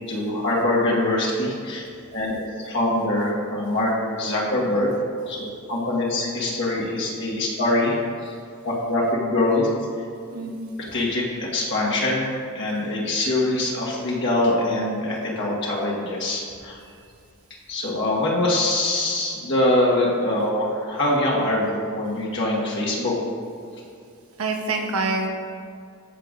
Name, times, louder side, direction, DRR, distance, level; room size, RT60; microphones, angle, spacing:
voice 1, 0.1-1.8 2.1-4.9 5.2-8.0 8.2-8.3 8.6-9.7 10.9-16.8 17.7-23.1, left 1 dB, 55° left, -5 dB, 1.5 m, -23 dB
voice 2, 10.3-10.7 16.9-17.0 24.4-25.3, right 3 dB, 75° right, 2 dB, 0.9 m, -26 dB
13.5 x 6.7 x 2.6 m, 2.3 s
head